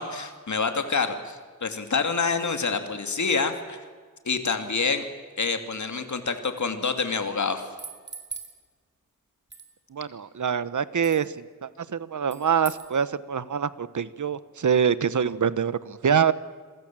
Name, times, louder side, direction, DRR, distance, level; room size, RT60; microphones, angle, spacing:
voice 1, 0.0-3.8 4.3-5.0 5.4-7.7, left 4 dB, 60° left, 7 dB, 2.6 m, -27 dB
sound 1, 7.6-8.5 9.5-9.7 11.0-11.2 12.3-12.9, right 4 dB, 35° right, 3.6 m, -40 dB
voice 2, 9.9-16.3, right 7 dB, 65° right, 16 dB, 1.0 m, -25 dB
28.0 x 22.5 x 7.6 m, 1.6 s
wide cardioid pair, 115°, 32 cm